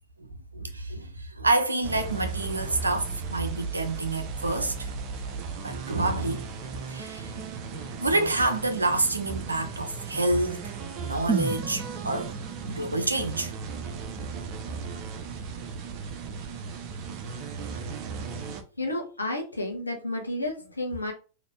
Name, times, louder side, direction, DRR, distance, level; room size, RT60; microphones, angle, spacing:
voice 1, 0.5-4.9 5.6-6.4 6.9-7.4 7.7-12.3 12.7-13.5, right 2 dB, 80° right, 0.6 m, -28 dB
sound 1, 1.8-18.6, right 5 dB, 40° right, 0.7 m, -36 dB
sound 2, 11.3-15.3 15.6-15.7, right 5 dB, 10° right, 0.4 m, -35 dB
voice 2, 18.8-21.1, left 1 dB, 80° left, 0.9 m, -31 dB
4.0 x 2.8 x 3.2 m
figure-of-eight pair, 90°, 0 cm